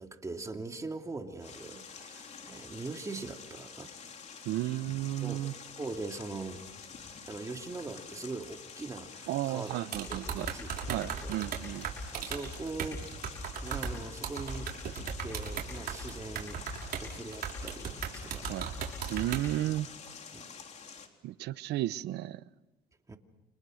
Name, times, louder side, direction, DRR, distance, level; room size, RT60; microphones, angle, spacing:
voice 1, 0.0-3.9 5.2-5.4 5.8-6.7 7.3-11.4 12.1-13.0 13.6-16.6 17.0-18.6 20.3-20.5 23.1-23.2, right 3 dB, 20° right, 4 dB, 2.6 m, -41 dB
sound 1, 1.4-21.1, left 6 dB, 40° left, 3.4 m, -48 dB
voice 2, 4.5-5.5 9.3-10.5 10.9-11.9 18.5-18.7 19.1-19.9 21.2-22.4, right 15 dB, 80° right, 16 dB, 0.9 m, -33 dB
sound 2, 9.9-17.0 17.3-19.4, right 7 dB, 60° right, 6.1 m, -36 dB
29.5 x 26.0 x 6.4 m, 1.0 s
cardioid pair, 110°, 17 cm